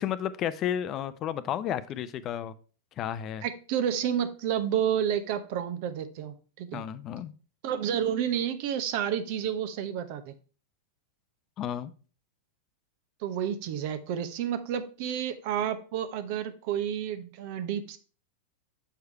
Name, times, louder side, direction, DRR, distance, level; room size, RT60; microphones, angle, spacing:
voice 1, 0.0-2.5 3.0-3.4 6.7-7.3 11.6-11.9, left 10 dB, 35° left, 15 dB, 0.5 m, -32 dB
voice 2, 3.4-6.8 7.6-10.3 13.2-18.0, right 9 dB, 55° right, 11 dB, 0.8 m, -30 dB
6.7 x 4.8 x 4.5 m, 0.37 s
hypercardioid pair, 95°, 0 cm